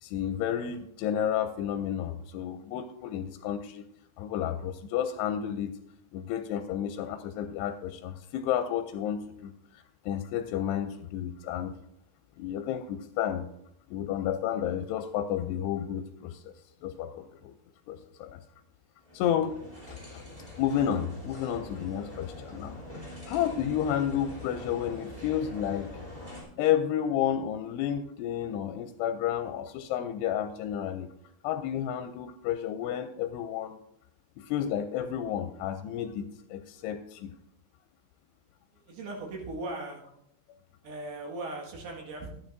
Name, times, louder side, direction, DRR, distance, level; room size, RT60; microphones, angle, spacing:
voice 1, 0.0-3.8 4.2-5.7 6.1-11.7 12.4-13.5 13.9-16.5 16.8-17.5 17.9-18.4 19.1-19.5 19.9-20.2 20.6-22.8 23.3-25.9 26.6-31.1 31.4-33.8 34.4-36.2 36.5-37.3, left 10 dB, 85° left, 8 dB, 2.6 m, -31 dB
sound 1, 19.0-26.4, left 1 dB, 10° right, 3.0 m, -44 dB
voice 2, 38.7-40.0 40.8-42.3, right 2 dB, 70° right, -1 dB, 3.6 m, -38 dB
13.0 x 9.2 x 2.6 m, 0.75 s
omnidirectional pair, 4.8 m